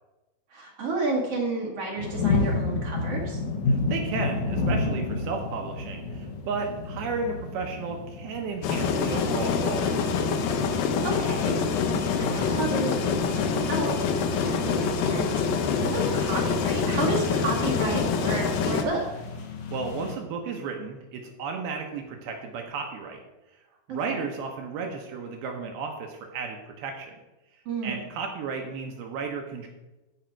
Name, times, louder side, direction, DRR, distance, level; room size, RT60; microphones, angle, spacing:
voice 1, 0.5-3.4 10.8-13.0 13.4-19.0 24.1-24.2 27.7-28.0, right 3 dB, 55° right, -1 dB, 1.8 m, -31 dB
sound 1, 2.0-20.2, left 3 dB, 60° left, 2.4 m, -32 dB
voice 2, 3.7-10.0 19.7-23.2 23.9-27.1 27.8-29.7, right 4 dB, 75° right, 3 dB, 2.7 m, -33 dB
sound 2, 8.6-18.8, left 5 dB, 75° left, 2.4 m, -25 dB
15.0 x 5.0 x 4.5 m, 1.0 s
omnidirectional pair, 4.7 m